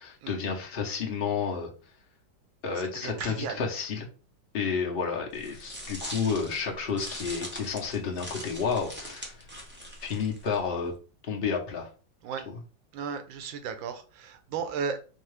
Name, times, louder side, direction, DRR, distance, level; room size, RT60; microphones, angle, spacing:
voice 1, 0.0-1.7 2.6-4.1 4.5-9.5 10.0-10.9 11.3-11.9, left 5 dB, 50° left, 0 dB, 0.7 m, -31 dB
voice 2, 2.9-3.6 4.6-4.7 12.2-12.4 12.9-15.0, right 6 dB, 85° right, 8 dB, 1.4 m, -35 dB
sound 1, 5.3-10.9, equal, 15° right, 0.4 m, -42 dB
4.5 x 2.3 x 3.2 m, 0.36 s
omnidirectional pair, 2.0 m